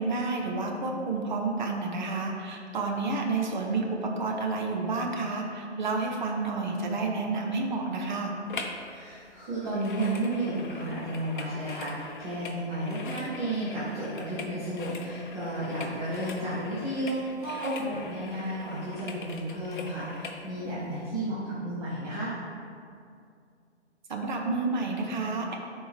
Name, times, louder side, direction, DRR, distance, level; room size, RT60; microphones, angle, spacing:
voice 1, 0.0-8.4 24.1-25.6, right 3 dB, 40° right, 1 dB, 0.9 m, -30 dB
sound 1, 8.5-8.9 9.1-20.4 20.9-21.0, left 3 dB, 45° left, 0.8 m, -42 dB
voice 2, 8.9-22.3, right 1 dB, 15° right, -10 dB, 1.0 m, -32 dB
11.5 x 4.4 x 3.4 m, 2.4 s
figure-of-eight pair, 135°, 36 cm